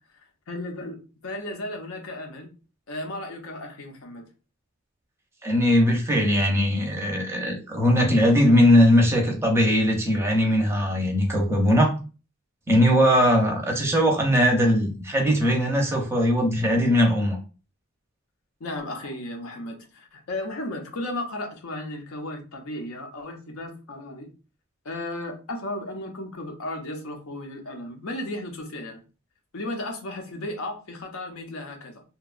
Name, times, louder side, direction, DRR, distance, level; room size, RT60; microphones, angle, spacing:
voice 1, 0.5-1.0 1.2-2.5 2.9-4.3 18.6-24.3 24.8-29.0 29.5-32.0, left 1 dB, 80° left, 3 dB, 0.6 m, -34 dB
voice 2, 5.4-11.9 12.7-17.4, equal, 10° right, 1 dB, 0.5 m, -20 dB
2.8 x 2.2 x 2.4 m, 0.35 s
head